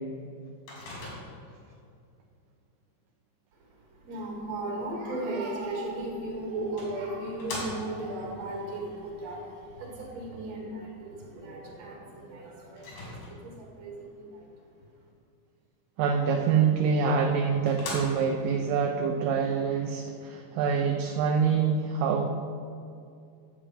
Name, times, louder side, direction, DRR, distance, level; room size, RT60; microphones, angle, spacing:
Microwave oven, 0.7-1.6 5.9-6.0 6.8-8.1 12.8-13.7 16.8-16.9 17.3-17.4 17.7-18.5, left 2 dB, 90° left, 4.2 m, -39 dB
voice 1, 3.5-14.5, right 2 dB, 50° right, -1 dB, 2.9 m, -36 dB
voice 2, 16.0-22.3, right 6 dB, 80° right, 2 dB, 2.2 m, -25 dB
11.0 x 7.6 x 4.9 m, 2.5 s
omnidirectional pair, 4.0 m